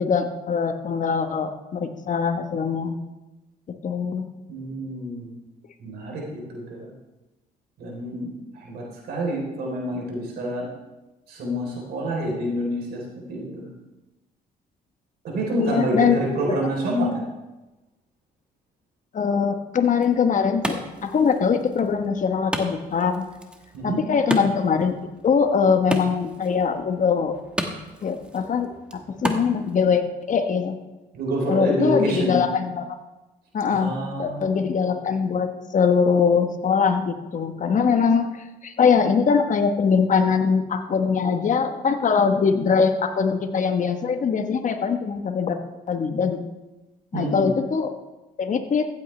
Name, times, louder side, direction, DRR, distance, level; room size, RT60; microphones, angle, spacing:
voice 1, 0.0-3.0 3.7-4.3 15.6-16.2 16.5-16.6 19.1-23.2 23.8-25.0 25.2-27.4 28.0-30.8 31.5-33.0 33.5-45.6 45.9-46.4 47.1-47.9 48.4-48.9, left 6 dB, 45° left, 7 dB, 1.2 m, -22 dB
voice 2, 4.5-5.4 5.8-6.9 7.8-10.7 11.3-13.0 13.3-13.7 15.2-17.2 23.7-24.0 31.1-32.4 33.7-34.6 47.1-47.5, right 1 dB, 70° right, -1 dB, 3.7 m, -27 dB
Wood, 19.8-29.8, equal, 5° right, 1.4 m, -34 dB
15.0 x 8.6 x 3.3 m, 1.1 s
supercardioid pair, 75°, 17 cm